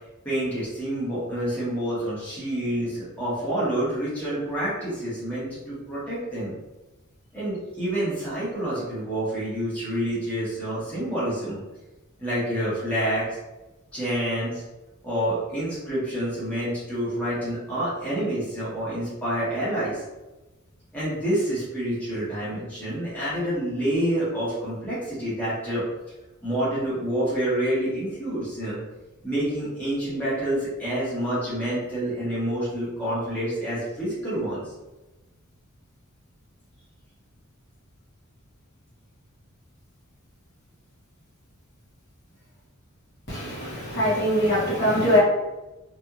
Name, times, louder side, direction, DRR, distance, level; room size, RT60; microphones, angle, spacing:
voice 1, 0.2-6.5 7.3-11.6 12.2-13.3 13.9-14.6 15.0-20.0 20.9-25.8 26.4-28.8 29.2-34.7, right 1 dB, 5° left, -11 dB, 1.1 m, -28 dB
voice 2, 43.3-45.2, left 1 dB, 50° left, -8 dB, 1.1 m, -22 dB
2.8 x 2.5 x 2.4 m, 1.1 s
head